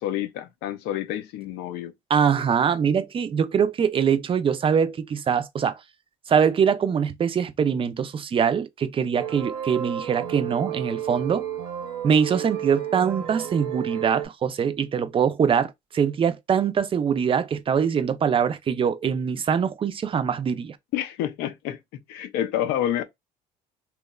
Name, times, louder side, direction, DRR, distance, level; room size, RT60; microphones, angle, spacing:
voice 1, 0.0-1.9 20.9-21.8 22.1-23.0, left 11 dB, 75° left, 0.5 m, -28 dB
voice 2, 2.1-5.8 6.3-11.5 12.0-20.8, right 7 dB, 30° right, 0.4 m, -23 dB
sound 1, 9.2-14.3, right 10 dB, 90° right, 0.8 m, -32 dB
2.9 x 2.1 x 2.2 m
supercardioid pair, 75°, 17 cm